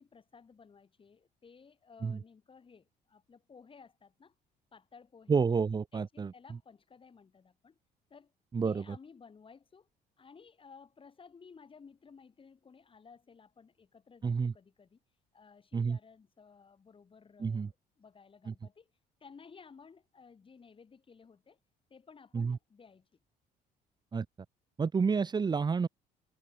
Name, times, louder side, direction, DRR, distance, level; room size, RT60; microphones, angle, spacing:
voice 1, 0.0-4.3 4.7-5.4 5.9-7.8 8.1-8.3 8.6-9.9 10.2-15.0 15.3-18.9 19.2-21.6 21.9-23.1, left 5 dB, 30° left, 7.2 m, -56 dB
voice 2, 5.3-6.3 8.5-8.8 14.2-14.5 15.7-16.0 17.4-17.7 18.5-18.6 22.3-22.6 24.1-24.3 24.8-25.9, right 5 dB, 25° right, 1.0 m, -29 dB
cardioid pair, 110°, 17 cm